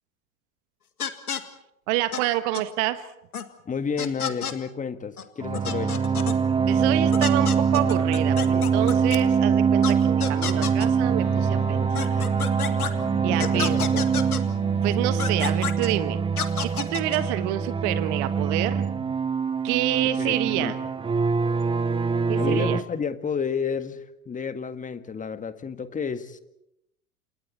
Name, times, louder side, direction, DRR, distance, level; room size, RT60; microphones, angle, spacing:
sound 1, 1.0-1.4 2.1-2.2 2.5-2.6 3.3-3.4 4.0-4.5 5.2-5.3 5.5-6.4 7.1-9.2 9.8-9.9 10.2-10.9 11.9-12.9 13.4-14.4 15.2-15.9 16.4-17.2, left 8 dB, 80° left, 2.0 m, -30 dB
voice 1, 1.9-3.1 6.7-12.2 13.2-13.8 14.8-16.2 16.6-19.0 19.6-20.8 22.3-22.8, right 15 dB, 50° right, 11 dB, 1.5 m, -28 dB
voice 2, 3.6-6.0 13.3-14.0 20.2-20.7 22.4-26.4, left 6 dB, 15° left, 10 dB, 1.7 m, -31 dB
sound 2, 5.4-22.8, right 6 dB, 10° right, 0.8 m, -24 dB
Wind instrument woodwind instrument, 11.1-15.3, left 13 dB, 35° left, 2.3 m, -42 dB
30.0 x 28.0 x 4.4 m, 0.81 s
figure-of-eight pair, 85°, 44 cm